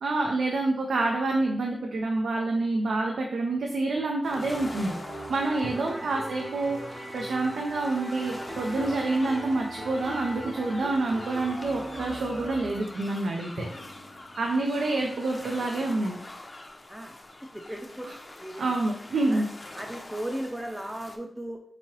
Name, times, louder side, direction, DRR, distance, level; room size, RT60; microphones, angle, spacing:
voice 1, 0.0-4.9 5.3-13.7 14.4-16.2 18.6-19.5, right 2 dB, 90° right, 1 dB, 0.4 m, -27 dB
sound 1, 1.0-2.7 5.6-8.3 13.6-16.6, left 1 dB, 75° left, 0.8 m, -48 dB
sound 2, 4.2-21.2, left 2 dB, 45° left, 0.5 m, -44 dB
sound 3, 4.3-13.2, right 1 dB, 60° right, 1.0 m, -39 dB
voice 2, 5.7-6.1 16.9-17.1 17.5-18.1 18.4-18.8 19.3-19.4 19.7-21.6, right 1 dB, 10° right, 2 dB, 0.4 m, -37 dB
3.6 x 3.0 x 3.0 m, 0.65 s
cardioid pair, 40°, 0 cm